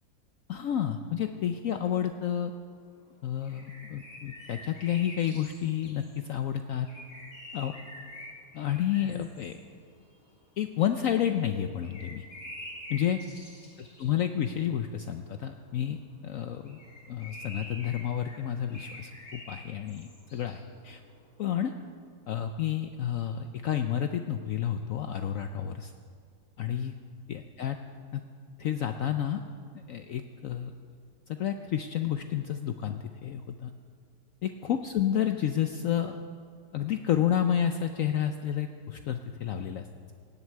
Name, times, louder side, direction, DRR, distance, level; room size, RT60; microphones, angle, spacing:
voice 1, 0.5-2.5 3.2-6.9 7.5-7.7 8.5-9.6 10.6-12.2 12.9-13.2 14.0-16.8 17.1-21.0 21.4-21.7 22.3-25.9 26.6-26.9 27.3-27.8 28.1-28.2 28.6-29.4 29.9-30.7 31.3-33.7 34.4-36.2 36.7-39.9, left 10 dB, 65° left, 7 dB, 0.8 m, -30 dB
sound 1, 2.9-3.0 3.4-6.2 6.8-11.1 11.4-16.2 16.5-21.4, left 1 dB, 50° left, 3.6 m, -47 dB
17.5 x 7.9 x 8.4 m, 2.1 s
omnidirectional pair, 1.8 m